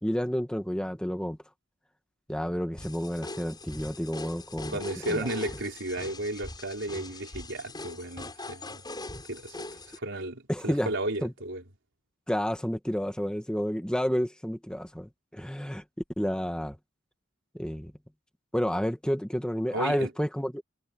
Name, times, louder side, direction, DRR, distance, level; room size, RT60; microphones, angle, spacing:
voice 1, 0.0-1.4 2.3-4.7 5.1-5.3 10.5-10.9 11.2-11.3 12.3-15.8 16.2-16.8 17.5-17.9 18.5-20.6, equal, 5° left, 1.5 m, -30 dB
sound 1, 2.8-10.0, left 2 dB, 20° left, 7.4 m, -41 dB
voice 2, 4.7-8.8 9.3-9.6 9.9-11.6 19.7-20.1, right 1 dB, 65° right, 4.5 m, -34 dB
head